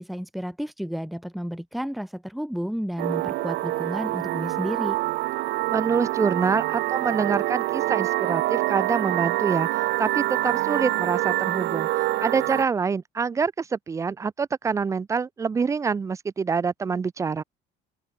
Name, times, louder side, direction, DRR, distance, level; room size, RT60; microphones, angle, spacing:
voice 1, 0.0-5.0, equal, ahead, 1.8 m, -32 dB
sound 1, 3.0-12.6, right 17 dB, 65° right, 2.3 m, -26 dB
voice 2, 5.7-11.9 12.2-17.4, right 5 dB, 15° right, 0.6 m, -26 dB
open air
cardioid pair, 160°, 19 cm